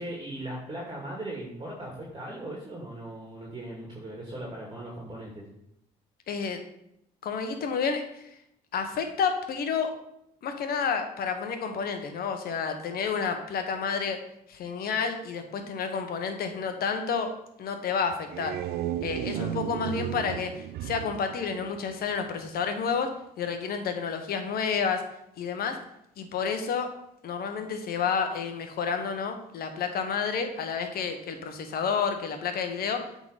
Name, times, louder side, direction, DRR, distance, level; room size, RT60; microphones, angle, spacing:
voice 1, 0.0-5.4 19.3-19.6, right 1 dB, 25° right, -2 dB, 2.1 m, -38 dB
voice 2, 6.3-6.6 7.2-8.2 8.7-9.9 10.4-14.2 14.5-17.3 17.6-18.6 19.0-23.1 23.4-25.0 25.4-25.8 26.2-26.9 27.2-33.0, left 6 dB, 65° left, 6 dB, 1.2 m, -30 dB
sound 1, 18.1-22.3, right 12 dB, 70° right, 0.4 m, -34 dB
8.2 x 3.9 x 5.0 m, 0.78 s
supercardioid pair, 70°, 17 cm